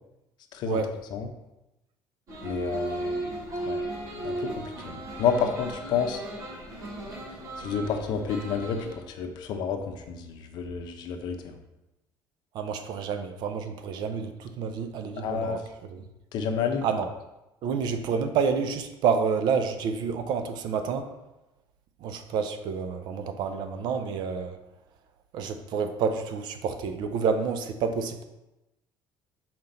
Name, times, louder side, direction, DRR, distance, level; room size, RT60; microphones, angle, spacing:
sound 1, 2.3-8.9, right 1 dB, 40° right, 1.4 m, -35 dB
voice 1, 2.4-3.3 3.7-3.8 4.2-4.5 4.9-6.2 7.6-11.5 15.2-15.6 16.3-16.8, left 6 dB, 65° left, 5 dB, 0.8 m, -30 dB
voice 2, 12.5-15.6 15.9-16.0 16.8-17.1 17.6-21.1 22.0-24.6 25.3-28.2, right 6 dB, 65° right, 8 dB, 0.6 m, -29 dB
5.7 x 4.3 x 3.9 m, 0.96 s
cardioid pair, 145°, 8 cm